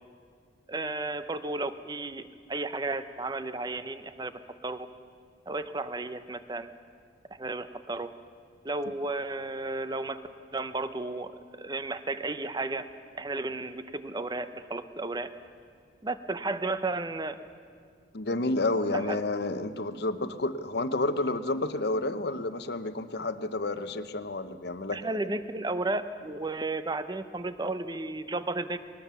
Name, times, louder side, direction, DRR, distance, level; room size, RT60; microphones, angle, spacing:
voice 1, 0.7-4.9 5.5-6.7 7.3-8.1 8.6-10.2 10.5-12.9 13.1-15.3 16.0-17.4 18.9-19.2 24.9-28.8, right 2 dB, 20° right, 11 dB, 0.7 m, -33 dB
voice 2, 18.1-25.0, left 2 dB, 60° left, 11 dB, 0.9 m, -30 dB
20.0 x 19.5 x 6.9 m, 2.2 s
head